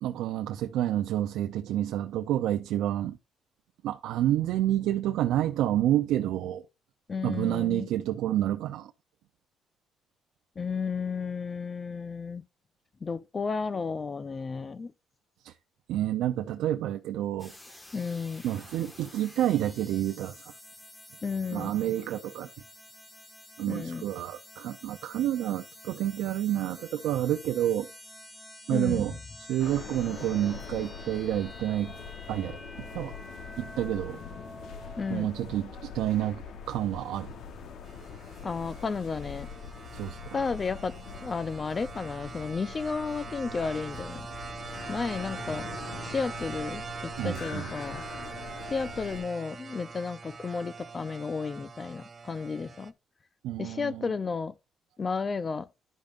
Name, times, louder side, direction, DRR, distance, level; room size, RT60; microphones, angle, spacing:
voice 1, 0.0-3.2 3.8-6.6 7.2-8.9 15.4-15.6 15.9-17.5 18.4-20.5 21.5-22.5 23.6-27.9 28.7-29.1 29.4-31.9 32.3-33.2 33.6-34.2 35.1-37.3 39.9-40.4 47.2-47.7 53.4-54.1, right 12 dB, 90° right, 0.5 m, -29 dB
voice 2, 7.1-7.9 10.6-12.4 13.0-14.9 17.9-18.4 21.2-21.7 23.7-24.0 28.7-29.0 35.0-35.3 38.4-39.5 40.3-40.9 41.2-44.3 44.9-45.7 46.0-48.0 48.6-52.9 53.6-54.5 55.0-55.7, left 5 dB, 35° left, 0.6 m, -33 dB
sound 1, 17.4-35.2, left 1 dB, 20° left, 1.7 m, -49 dB
sound 2, 29.6-49.2, left 6 dB, 70° left, 1.0 m, -43 dB
sound 3, 37.9-52.9, right 5 dB, 40° right, 0.7 m, -43 dB
12.0 x 5.1 x 2.5 m
cardioid pair, 90°, 0 cm